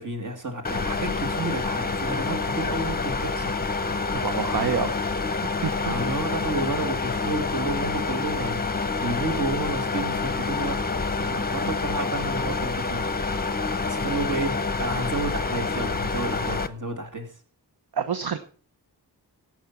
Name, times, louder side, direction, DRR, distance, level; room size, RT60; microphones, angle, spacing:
voice 1, 0.0-3.5 5.8-8.7 9.0-10.8 11.2-13.1 13.8-17.3, right 2 dB, 50° right, 4 dB, 2.8 m, -31 dB
sound 1, 0.6-16.7, left 4 dB, 25° left, 0.8 m, -27 dB
voice 2, 4.2-5.1 5.4-5.9 14.1-14.2 17.9-18.4, right 7 dB, 65° right, 10 dB, 1.0 m, -28 dB
16.5 x 6.0 x 5.9 m, 0.43 s
wide cardioid pair, 110°, 40 cm